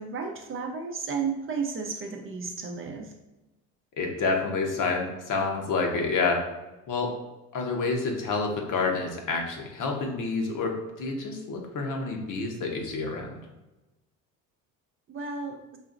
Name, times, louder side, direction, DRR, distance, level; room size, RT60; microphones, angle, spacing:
voice 1, 0.0-3.1 15.1-15.6, right 5 dB, 30° right, 2 dB, 0.5 m, -33 dB
voice 2, 4.0-6.4 6.9-7.1 7.5-13.4, left 4 dB, 50° left, 2 dB, 0.9 m, -28 dB
4.1 x 2.8 x 2.5 m, 1.0 s
supercardioid pair, 80°, 40 cm